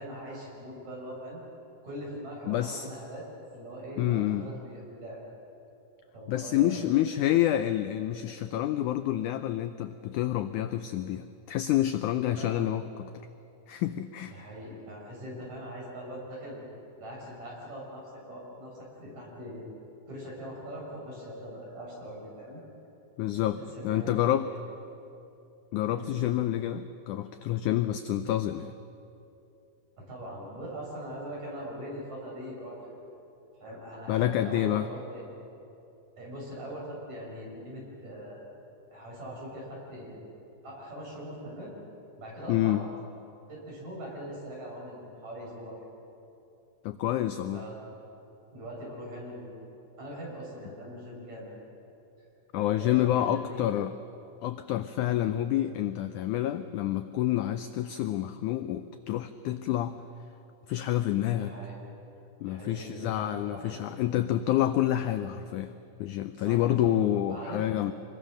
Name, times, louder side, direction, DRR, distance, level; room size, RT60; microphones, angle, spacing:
voice 1, 0.0-1.4 1.8-3.2 3.5-5.2 6.1-6.8 12.3-12.6 14.2-16.6 17.0-19.6 20.1-22.6 23.6-24.6 25.9-26.2 30.0-33.0 33.6-35.2 36.2-38.5 38.9-40.2 40.6-41.7 42.2-42.8 43.5-45.7 47.5-47.8 48.5-49.6 50.0-51.5 52.6-53.7 55.0-55.2 61.3-61.8 62.5-63.8 66.4-66.9 67.2-67.6, equal, 50° right, -4 dB, 7.6 m, -41 dB
voice 2, 2.5-2.9 4.0-4.5 6.3-13.1 13.7-14.5 23.2-23.6 23.8-24.5 25.7-28.8 34.1-34.9 42.5-42.8 46.8-47.6 52.5-53.9 54.4-60.0 60.7-61.5 62.4-65.7 66.0-67.9, left 12 dB, 80° left, 10 dB, 1.8 m, -28 dB
26.0 x 22.0 x 6.4 m, 2.8 s
omnidirectional pair, 4.1 m